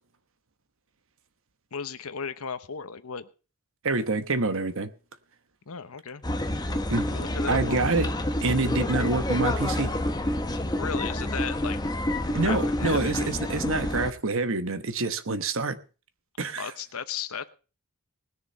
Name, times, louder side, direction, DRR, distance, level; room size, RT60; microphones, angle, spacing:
voice 1, 1.7-3.3 5.7-6.2 7.0-8.0 10.7-11.8 12.4-13.2 16.6-17.5, left 6 dB, 70° left, 0.9 m, -35 dB
voice 2, 3.8-4.9 6.9-7.1 7.5-8.1 8.4-9.9 12.3-15.8 16.4-16.7, right 3 dB, 60° right, 1.1 m, -26 dB
sound 1, 6.2-14.1, left 1 dB, 20° left, 0.9 m, -28 dB
19.5 x 6.8 x 5.4 m
head